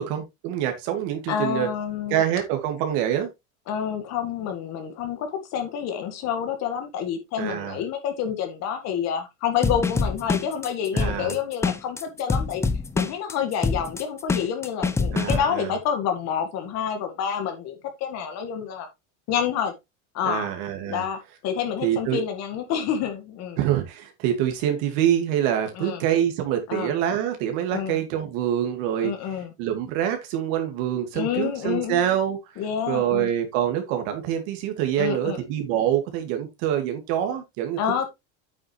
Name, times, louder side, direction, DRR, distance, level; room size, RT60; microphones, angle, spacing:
voice 1, 0.0-1.7 2.1-3.3 7.4-7.8 10.9-11.4 15.1-15.7 20.2-21.0 21.8-22.2 23.6-29.1 29.6-32.4 32.9-38.1, right 10 dB, 60° right, 2.2 m, -25 dB
voice 2, 1.3-2.2 3.7-12.6 13.0-18.9 19.3-19.7 20.1-20.5 20.9-23.6 25.7-26.0 26.7-26.9 27.7-28.0 29.0-29.5 31.1-32.0 32.6-33.3 35.0-35.4 37.8-38.1, left 8 dB, 45° left, 1.9 m, -28 dB
sound 1, 9.6-15.4, left 4 dB, 5° left, 0.4 m, -25 dB
8.7 x 7.4 x 3.2 m
supercardioid pair, 150°, 38 cm